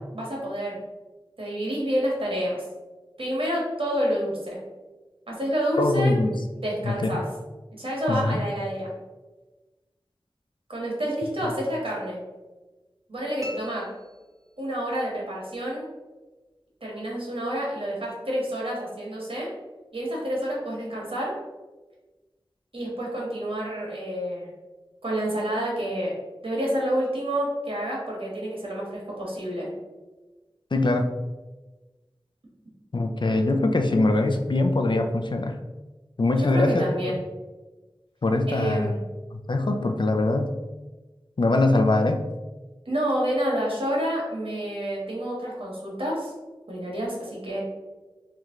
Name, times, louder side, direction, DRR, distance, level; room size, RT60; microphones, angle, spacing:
voice 1, 0.1-0.8 1.4-2.6 3.2-4.6 5.3-6.1 6.5-7.2 7.7-8.9 10.7-12.2 13.1-13.8 14.6-15.9 16.8-19.5 19.9-21.3 22.7-24.5 25.0-26.1 26.4-29.7 36.4-37.2 38.5-39.0 42.8-46.3 46.7-47.6, equal, 80° right, -4 dB, 1.4 m, -28 dB
voice 2, 5.8-6.3 6.8-7.2 8.1-8.4 30.7-31.1 32.9-35.6 36.2-36.9 38.2-38.9 39.3-40.6 41.4-42.2, left 2 dB, 55° left, 5 dB, 0.4 m, -22 dB
sound 1, 13.4-15.0, equal, 40° right, 0.6 m, -43 dB
3.2 x 3.1 x 3.6 m, 1.2 s
wide cardioid pair, 50°, 9 cm